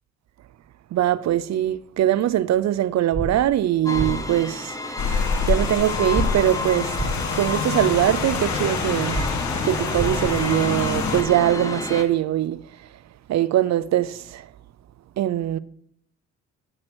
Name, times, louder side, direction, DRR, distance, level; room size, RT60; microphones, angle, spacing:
voice 1, 0.9-4.7 5.4-6.9 7.3-9.2 9.6-12.6 13.3-14.5 15.2-15.6, right 12 dB, 60° right, 0.6 m, -22 dB
sound 1, 3.1-3.3 3.9-4.1 6.1-6.3 6.9-7.1 9.1-9.3 9.9-10.1, right 2 dB, 15° right, 1.7 m, -26 dB
sound 2, 3.9-12.0, left 2 dB, 10° left, 1.3 m, -30 dB
Rain, 5.0-11.2, left 6 dB, 70° left, 1.3 m, -27 dB
9.1 x 7.6 x 6.2 m
cardioid pair, 90°, 30 cm